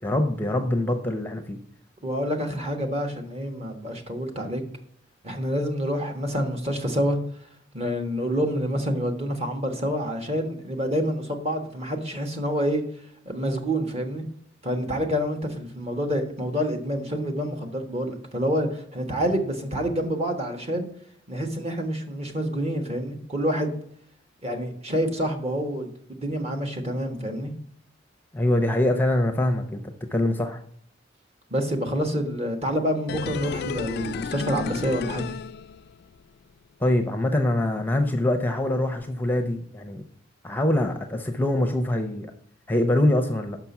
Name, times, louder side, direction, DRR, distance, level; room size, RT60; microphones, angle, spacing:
voice 1, 0.0-1.6 28.3-30.6 36.8-40.0 40.4-42.3 42.7-43.6, left 1 dB, 10° left, 5 dB, 0.6 m, -24 dB
voice 2, 2.0-4.6 5.2-7.2 7.7-12.8 13.2-14.2 14.6-20.9 21.3-23.7 24.4-25.9 26.2-27.5 31.5-35.2, equal, 35° right, 5 dB, 1.3 m, -27 dB
sound 1, 33.1-36.2 36.5-36.6, left 6 dB, 55° left, 0.3 m, -33 dB
6.0 x 5.9 x 7.0 m, 0.65 s
head